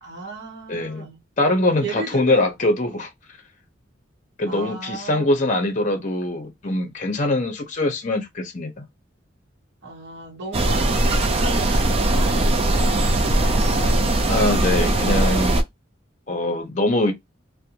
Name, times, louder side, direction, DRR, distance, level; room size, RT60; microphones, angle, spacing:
voice 1, 0.0-1.2 1.8-2.5 4.5-5.3 9.8-14.1, right 2 dB, 60° right, 0.9 m, -35 dB
voice 2, 0.7-1.0 1.4-3.1 4.4-8.9 14.3-15.6 16.3-17.1, left 2 dB, 40° left, 0.7 m, -22 dB
sound 1, 10.5-15.6, right 1 dB, 30° right, 0.4 m, -20 dB
2.6 x 2.1 x 2.8 m
head